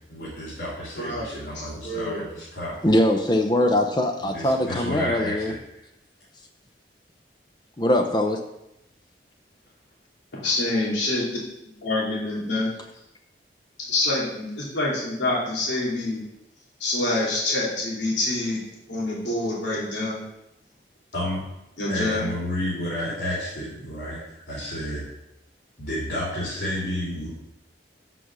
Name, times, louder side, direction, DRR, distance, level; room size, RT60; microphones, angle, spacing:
voice 1, 0.1-2.8 4.2-5.6 21.1-21.4 21.9-25.1 25.8-27.3, left 1 dB, 65° left, -8 dB, 3.3 m, -31 dB
voice 2, 1.0-2.2 10.3-11.2 11.8-12.7 13.9-16.2 16.8-18.6 18.9-20.2 21.8-22.3, left 2 dB, 80° left, -6 dB, 2.8 m, -26 dB
voice 3, 2.8-5.5 7.8-8.4, left 1 dB, 25° left, 4 dB, 0.6 m, -22 dB
7.7 x 6.2 x 6.0 m, 0.87 s
head